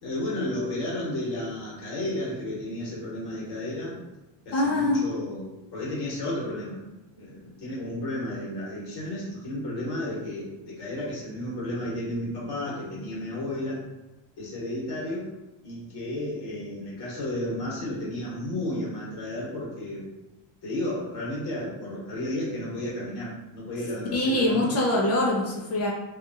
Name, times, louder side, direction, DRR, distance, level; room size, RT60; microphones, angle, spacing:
voice 1, 0.0-4.0 4.4-6.8 7.1-13.8 14.4-15.3 15.6-20.0 20.6-24.7, left 1 dB, 55° left, -6 dB, 1.4 m, -32 dB
voice 2, 4.5-5.0 24.1-25.9, left 1 dB, 35° left, -2 dB, 0.4 m, -24 dB
2.8 x 2.3 x 2.6 m, 1.0 s
cardioid pair, 145°, 47 cm